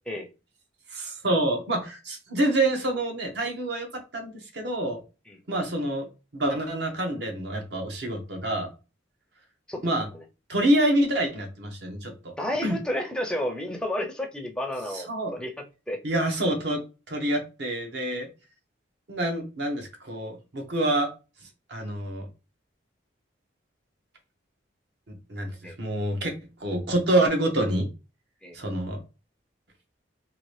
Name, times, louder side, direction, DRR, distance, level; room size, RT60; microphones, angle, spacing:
voice 1, 0.9-3.9 4.1-5.0 5.5-6.1 6.3-8.7 9.8-10.1 10.5-12.1 12.6-12.8 14.9-15.3 16.0-16.8 17.1-18.3 19.1-21.1 21.7-22.3 25.1-26.3 26.6-27.9 28.5-29.0, right 1 dB, 60° right, 0.8 m, -27 dB
voice 2, 9.7-10.2 12.4-16.0 25.6-25.8 28.4-28.6, left 1 dB, 5° left, 0.4 m, -32 dB
2.8 x 2.5 x 3.1 m
head